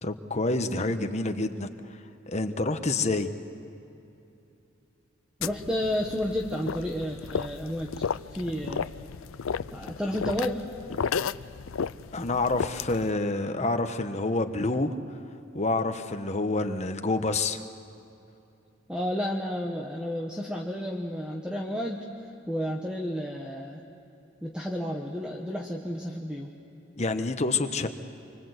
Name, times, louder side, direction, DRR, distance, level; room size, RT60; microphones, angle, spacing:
voice 1, 0.0-2.0 2.3-3.3 12.1-15.0 15.5-17.6 27.0-27.9, left 2 dB, 35° left, 8 dB, 1.2 m, -28 dB
sound 1, 5.4-13.1, left 6 dB, 90° left, 0.5 m, -34 dB
voice 2, 5.4-8.0 8.3-8.9 9.7-10.6 18.9-22.1 22.5-23.8 24.4-26.5, equal, 5° right, 0 dB, 1.3 m, -31 dB
26.5 x 24.5 x 8.2 m, 2.8 s
head